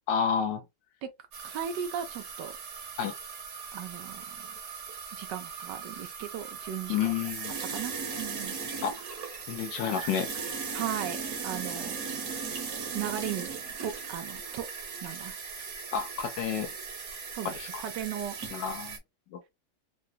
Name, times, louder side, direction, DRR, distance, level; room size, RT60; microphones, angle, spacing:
voice 1, 0.1-0.6 3.0-3.1 6.9-7.5 8.8-9.0 9.5-10.3 15.9-16.7 17.4-17.8 18.5-19.0 19.3-19.4, left 7 dB, 75° left, 1.3 m, -30 dB
sound 1, 1.3-19.0, right 5 dB, 55° right, 1.3 m, -38 dB
voice 2, 1.4-2.5 3.7-4.5 5.1-7.1 7.7-8.5 10.7-12.0 12.9-14.7 15.0-15.8 17.3-18.3, right 9 dB, 75° right, 1.2 m, -37 dB
3.8 x 2.2 x 2.6 m
omnidirectional pair, 2.0 m